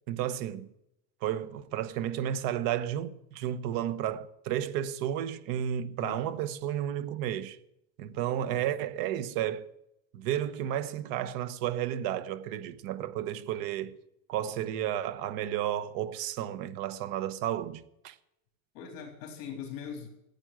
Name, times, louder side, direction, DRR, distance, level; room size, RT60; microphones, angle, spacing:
voice 1, 0.1-0.7 1.2-7.6 8.0-9.7 10.1-13.9 14.3-18.2, right 11 dB, 55° right, 1.2 m, -32 dB
voice 2, 6.0-6.4 8.5-8.6 18.7-20.1, left 7 dB, 50° left, 3.5 m, -41 dB
14.5 x 8.9 x 8.9 m
cardioid pair, 160°, 42 cm